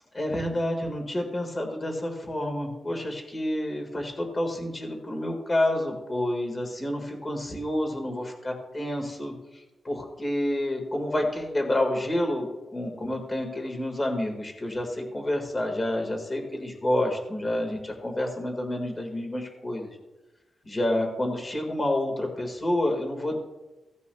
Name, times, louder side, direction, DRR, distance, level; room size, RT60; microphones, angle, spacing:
voice 1, 0.1-19.9 20.6-23.4, left 1 dB, 25° left, 2 dB, 1.7 m, -29 dB
16.0 x 9.6 x 2.3 m, 1.1 s
wide cardioid pair, 160°, 0 cm